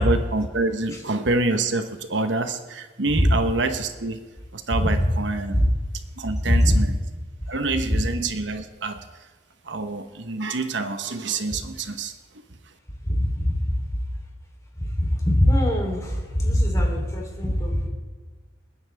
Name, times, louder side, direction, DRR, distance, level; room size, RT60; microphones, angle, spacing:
voice 1, 0.0-4.2 4.5-5.6 6.2-7.0 7.5-9.0 9.7-12.1, right 3 dB, 70° right, 8 dB, 1.1 m, -26 dB
voice 2, 13.1-13.5 15.0-17.9, equal, 15° left, 0 dB, 3.4 m, -21 dB
28.5 x 9.9 x 3.5 m, 1.4 s
head